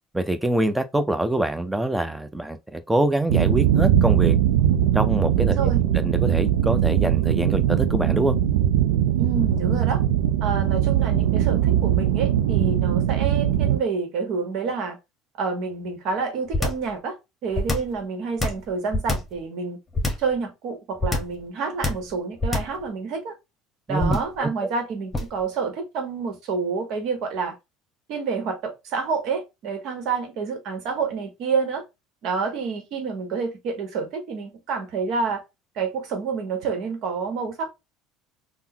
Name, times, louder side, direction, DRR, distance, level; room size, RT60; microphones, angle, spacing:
voice 1, 0.1-4.4 4.9-5.5 6.0-8.4 23.9-24.7, right 1 dB, 10° right, 0.5 m, -24 dB
sound 1, 3.3-13.8, right 10 dB, 80° right, 0.3 m, -20 dB
voice 2, 5.3-5.8 9.2-10.0 10.4-15.0 15.4-17.2 17.4-19.8 20.2-23.3 23.9-27.6 28.1-31.8 32.2-35.4 35.8-37.7, right 5 dB, 60° right, 1.0 m, -28 dB
sound 2, 16.5-16.9 17.5-18.0 18.4-19.4 19.9-20.3 21.0-21.4 21.8-22.1 22.4-22.8 24.0-24.4 25.1-25.4, left 2 dB, 15° left, 1.0 m, -25 dB
3.6 x 2.0 x 2.7 m
hypercardioid pair, 75°, 0 cm